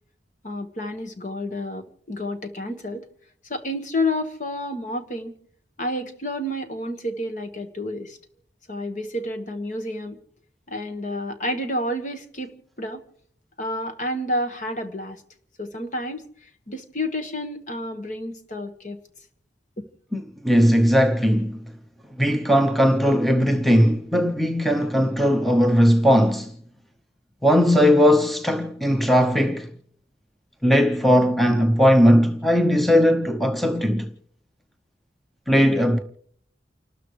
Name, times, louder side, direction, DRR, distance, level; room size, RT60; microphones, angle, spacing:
voice 1, 0.4-3.1 3.5-5.3 5.8-8.2 8.7-10.2 10.7-13.0 13.6-15.2 15.6-16.2 16.7-19.0 19.8-19.9, left 1 dB, 45° left, 1.5 m, -30 dB
voice 2, 20.1-21.6 22.2-26.5 27.4-29.7 30.6-34.1 35.5-36.0, equal, ahead, 0.7 m, -18 dB
29.0 x 13.0 x 3.2 m
head